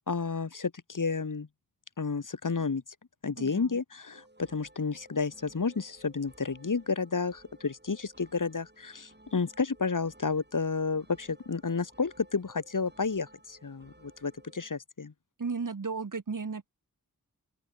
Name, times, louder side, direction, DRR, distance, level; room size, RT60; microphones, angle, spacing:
voice 1, 0.1-1.5 2.0-2.8 3.2-15.1, left 4 dB, 60° left, 1.3 m, -31 dB
voice 2, 3.4-3.8 15.4-16.7, right 5 dB, 60° right, 1.2 m, -35 dB
sound 1, 4.1-14.7, right 1 dB, 30° right, 5.8 m, -58 dB
open air
wide cardioid pair, 45°, 36 cm